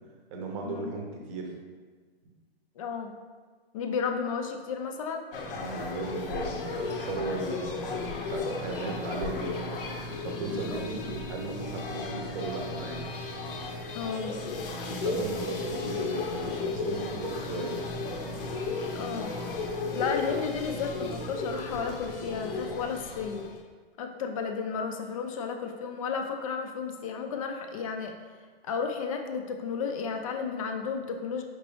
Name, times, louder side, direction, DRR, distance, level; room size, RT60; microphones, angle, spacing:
voice 1, 0.3-1.5 5.5-7.6 7.9-9.7 10.2-13.0 14.8-17.8, right 3 dB, 30° right, 1 dB, 0.7 m, -36 dB
voice 2, 2.8-3.1 3.7-5.2 10.5-11.1 13.9-14.4 18.9-19.3 19.9-23.4 24.0-28.1 28.6-31.4, left 5 dB, 35° left, 4 dB, 0.4 m, -33 dB
sound 1, 5.3-23.6, left 3 dB, 60° left, 0.7 m, -34 dB
5.1 x 3.0 x 3.0 m, 1.5 s
hypercardioid pair, 135°, 31 cm